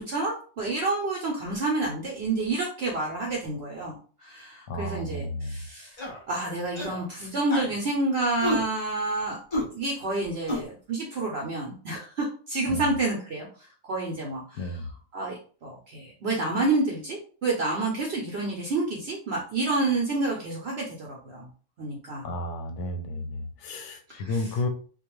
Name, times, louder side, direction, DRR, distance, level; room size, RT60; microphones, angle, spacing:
voice 1, 0.0-6.0 6.3-9.4 9.7-13.5 13.8-14.8 15.1-21.5 21.8-22.3 24.1-24.4, right 2 dB, 60° right, -1 dB, 0.8 m, -29 dB
voice 2, 4.7-5.6 12.7-12.9 14.6-14.9 22.2-24.7, left 2 dB, 70° left, 5 dB, 0.8 m, -32 dB
sound 1, 6.0-6.2 6.7-7.0 7.5-7.7 8.4-8.6 9.5-9.6 10.5-10.6, left 1 dB, 35° left, 0.5 m, -29 dB
2.4 x 2.2 x 3.0 m, 0.41 s
omnidirectional pair, 1.3 m